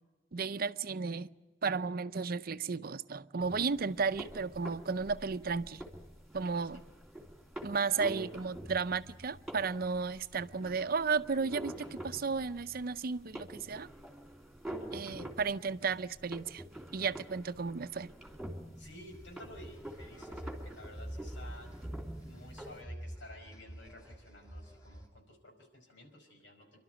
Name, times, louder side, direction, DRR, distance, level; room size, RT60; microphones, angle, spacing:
voice 1, 0.3-1.3 1.6-5.8 6.3-6.8 7.6-13.9 14.9-16.6 16.9-18.1, right 5 dB, 55° right, 0.6 m, -34 dB
sound 1, 3.4-22.8, right 1 dB, ahead, 3.0 m, -47 dB
voice 2, 15.0-15.4 18.8-21.7 22.2-26.8, left 1 dB, 85° left, 5.2 m, -53 dB
sound 2, 19.1-25.1, right 1 dB, 20° left, 2.9 m, -46 dB
27.5 x 12.0 x 9.1 m
head